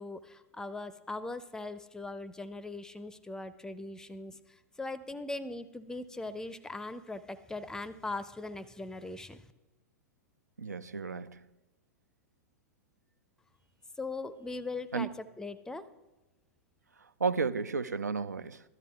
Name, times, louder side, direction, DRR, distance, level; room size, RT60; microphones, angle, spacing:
voice 1, 0.0-9.5 14.0-15.9, left 2 dB, 5° left, 0.4 m, -40 dB
voice 2, 10.6-11.4 14.9-15.1 17.2-18.6, right 5 dB, 85° right, 0.4 m, -32 dB
13.5 x 12.5 x 2.3 m
figure-of-eight pair, 100°, 9 cm